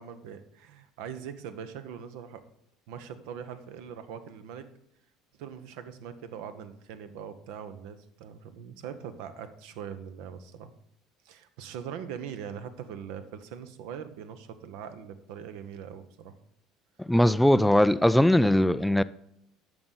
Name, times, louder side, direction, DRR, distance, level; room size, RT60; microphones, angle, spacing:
voice 1, 0.0-2.4 2.9-4.7 5.4-10.7 11.2-16.3, right 8 dB, 60° right, 0.8 m, -41 dB
voice 2, 17.0-19.0, left 1 dB, 5° left, 0.3 m, -20 dB
10.5 x 6.6 x 4.1 m
figure-of-eight pair, 60°, 0 cm